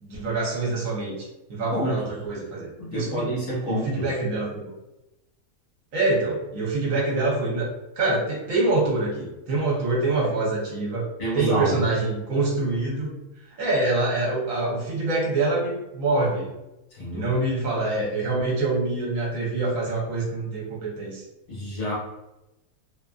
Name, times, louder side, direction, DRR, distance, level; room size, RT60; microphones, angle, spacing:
voice 1, 0.0-3.3 3.7-4.6 5.9-7.7 8.0-11.1 11.3-13.1 13.6-16.5 17.1-21.2, right 2 dB, 65° right, -4 dB, 1.1 m, -25 dB
voice 2, 1.7-2.1 2.8-4.1 11.2-11.9 16.9-17.3 21.5-21.9, equal, 55° left, -6 dB, 1.1 m, -28 dB
2.7 x 2.4 x 2.3 m, 0.96 s
omnidirectional pair, 1.6 m